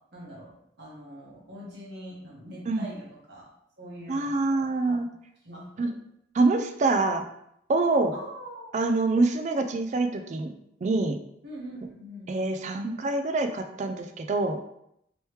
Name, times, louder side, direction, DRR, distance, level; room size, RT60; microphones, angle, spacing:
voice 1, 0.1-5.0 5.4-5.9 8.1-8.7 11.4-12.5, equal, 60° right, -5 dB, 1.1 m, -43 dB
voice 2, 4.1-5.1 5.8-5.9 6.3-7.2 7.7-8.1 8.7-10.5 10.8-11.2 12.3-14.6, right 3 dB, 40° right, 6 dB, 0.3 m, -25 dB
3.1 x 3.0 x 3.1 m, 0.78 s
head